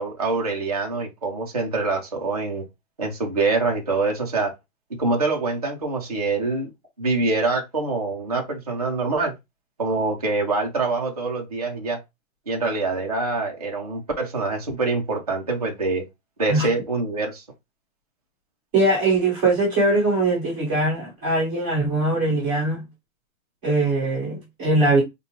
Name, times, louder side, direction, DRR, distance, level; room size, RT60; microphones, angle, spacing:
voice 1, 0.0-2.6 3.0-4.5 5.0-6.7 7.0-9.3 9.8-12.0 12.5-16.0 16.4-17.4, right 3 dB, 30° right, 0.4 m, -25 dB
voice 2, 18.7-22.8 23.6-25.0, right 2 dB, 15° right, 1.3 m, -21 dB
5.0 x 2.1 x 2.8 m
hypercardioid pair, 180°, 42 cm